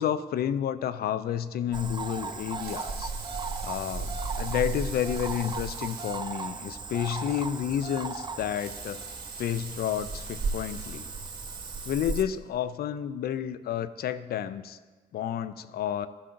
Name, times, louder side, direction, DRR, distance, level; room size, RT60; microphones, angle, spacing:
voice 1, 0.0-3.1 3.6-9.1 9.4-11.1 11.9-14.8 15.1-16.1, left 10 dB, 65° left, 13 dB, 0.4 m, -30 dB
Cricket / Frog, 1.7-12.2, right 4 dB, 25° right, 0.5 m, -35 dB
Water tap faucet / Sink (filling or washing) / Liquid, 2.6-6.3 6.8-6.9 7.2-7.3 8.4-12.5 13.1-13.2, right 6 dB, 65° right, 0.9 m, -46 dB
13.0 x 5.7 x 2.5 m, 1.3 s
supercardioid pair, 50°, 17 cm